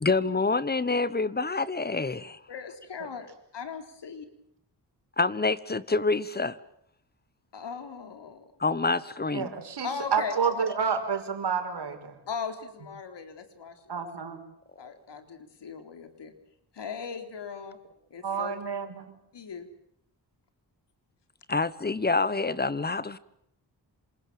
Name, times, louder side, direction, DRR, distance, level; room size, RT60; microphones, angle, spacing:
voice 1, 0.0-2.4 5.2-6.6 8.6-9.5 21.5-23.2, left 3 dB, 25° left, 1.2 m, -27 dB
voice 2, 2.5-3.3 3.5-4.3 7.5-8.5 9.8-10.3 12.3-13.8 14.8-16.3 16.7-17.8 18.1-18.6 19.3-19.7, left 6 dB, 80° left, 3.9 m, -38 dB
voice 3, 9.3-12.1 13.9-14.4 18.2-19.1, right 6 dB, 70° right, 5.7 m, -29 dB
27.5 x 26.5 x 7.6 m
wide cardioid pair, 140°, 41 cm